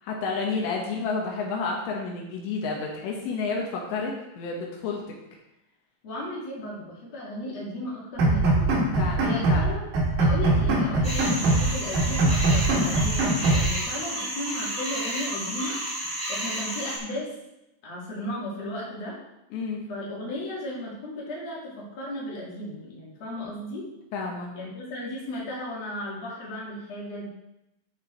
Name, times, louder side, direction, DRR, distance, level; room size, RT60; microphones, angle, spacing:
voice 1, 0.0-5.2 9.0-9.8 19.5-19.8 24.1-24.5, left 4 dB, 80° left, -1 dB, 3.4 m, -30 dB
voice 2, 6.0-8.7 9.2-15.8 16.3-17.3 17.8-19.2 19.9-23.9 24.5-27.3, left 1 dB, 45° left, -5 dB, 3.0 m, -35 dB
sound 1, 8.2-9.7 9.9-11.7 11.9-13.7, right 2 dB, 75° right, 4.3 m, -22 dB
sound 2, 11.0-17.0, equal, ahead, 2.0 m, -32 dB
13.5 x 4.6 x 4.5 m, 0.89 s
omnidirectional pair, 5.1 m